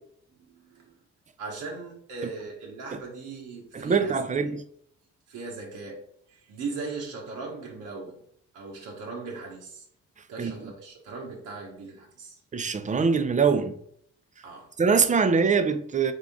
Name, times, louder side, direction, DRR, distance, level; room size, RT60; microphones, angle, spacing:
voice 1, 0.3-1.0 1.4-4.5 5.3-6.0 6.3-8.2 8.5-9.8 10.3-12.4 14.4-14.7, right 4 dB, 80° right, 1.3 m, -39 dB
voice 2, 3.7-4.6 10.4-10.5 12.5-13.8 14.8-16.1, right 5 dB, 25° right, 0.5 m, -23 dB
3.7 x 3.6 x 3.6 m
cardioid pair, 90°, 30 cm